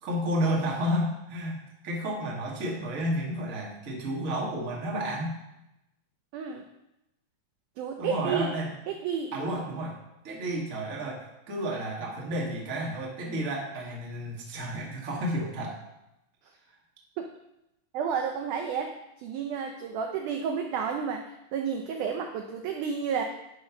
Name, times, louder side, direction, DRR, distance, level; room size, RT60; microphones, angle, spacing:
voice 1, 0.0-5.4 8.0-8.7 9.3-9.9 10.2-15.8, equal, 35° right, -2 dB, 1.3 m, -31 dB
voice 2, 6.3-6.6 7.8-8.5 8.9-9.3 17.2-17.3 17.9-21.2 21.5-23.2, right 7 dB, 80° right, 4 dB, 1.8 m, -31 dB
11.0 x 4.2 x 5.9 m, 0.91 s
omnidirectional pair, 4.3 m